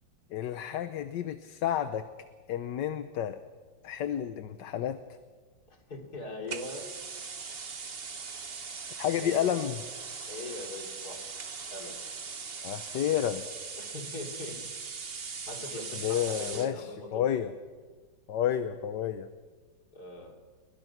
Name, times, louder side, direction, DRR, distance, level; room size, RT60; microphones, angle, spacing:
voice 1, 0.3-2.1 2.5-3.4 3.8-5.0 9.0-9.8 12.6-13.5 16.0-17.5 18.3-19.3, left 10 dB, 65° left, 10 dB, 1.4 m, -30 dB
voice 2, 5.7-6.8 9.2-9.5 10.3-11.4 11.7-12.0 13.8-14.6 15.4-17.3 19.9-20.3, left 2 dB, 50° left, 2 dB, 3.7 m, -41 dB
sound 1, 6.5-16.7, right 5 dB, 35° right, 1.2 m, -40 dB
28.5 x 21.5 x 6.0 m, 1.5 s
omnidirectional pair, 2.2 m